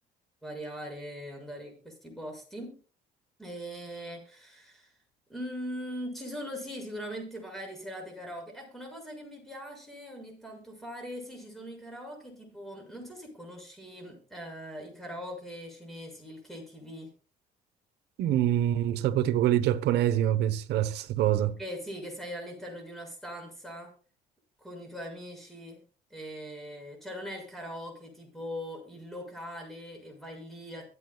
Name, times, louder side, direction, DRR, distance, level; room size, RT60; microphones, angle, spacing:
voice 1, 0.4-2.8 3.4-4.9 5.3-17.1 21.6-23.9 24.6-25.8 26.1-30.9, equal, ahead, 6.8 m, -41 dB
voice 2, 18.2-21.6, right 12 dB, 75° right, 1.1 m, -25 dB
24.0 x 8.7 x 2.3 m
cardioid pair, 110°, 17 cm